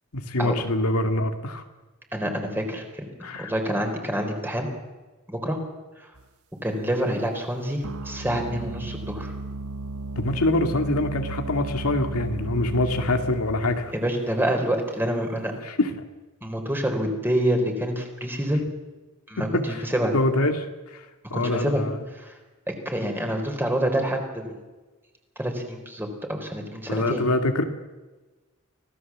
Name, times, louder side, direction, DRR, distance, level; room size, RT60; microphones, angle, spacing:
voice 1, 0.1-1.6 3.2-3.5 10.2-13.9 15.6-15.9 19.4-19.8 20.1-20.7 20.9-21.0 21.3-22.0 26.9-27.6, left 2 dB, 90° left, 5 dB, 2.1 m, -24 dB
voice 2, 2.1-3.1 3.4-4.7 5.3-5.6 6.6-9.3 13.9-15.5 16.4-18.6 19.3-20.1 21.3-21.8 22.2-22.3 22.7-24.6 25.4-27.2, right 1 dB, 10° right, 3 dB, 4.0 m, -27 dB
sound 1, 6.2-6.3 7.8-14.1, right 2 dB, 80° right, 1.2 m, -35 dB
25.5 x 17.5 x 7.4 m, 1.2 s
head